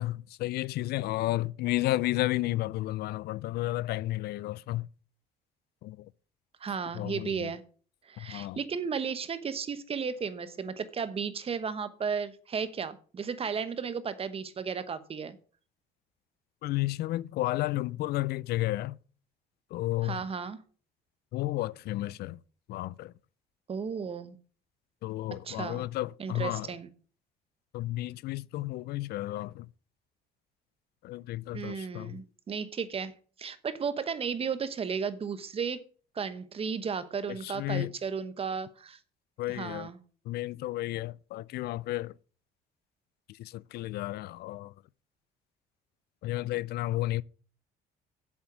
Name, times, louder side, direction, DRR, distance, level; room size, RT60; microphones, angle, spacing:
voice 1, 0.0-4.9 5.8-6.1 6.9-7.5 8.2-8.6 16.6-19.0 19.7-20.2 21.3-22.4 22.7-23.1 25.0-26.7 27.7-29.7 31.0-32.2 37.3-37.9 39.4-39.9 40.3-42.1 43.3-44.7 46.2-47.2, left 17 dB, 70° left, 0.4 m, -32 dB
voice 2, 6.6-7.6 8.0-15.4 20.0-20.6 23.7-24.4 25.4-25.9 26.2-26.9 31.5-33.1 33.4-35.8 36.1-39.0 39.5-40.0, right 6 dB, 35° right, 1.1 m, -34 dB
7.9 x 7.2 x 6.1 m
cardioid pair, 110°, 17 cm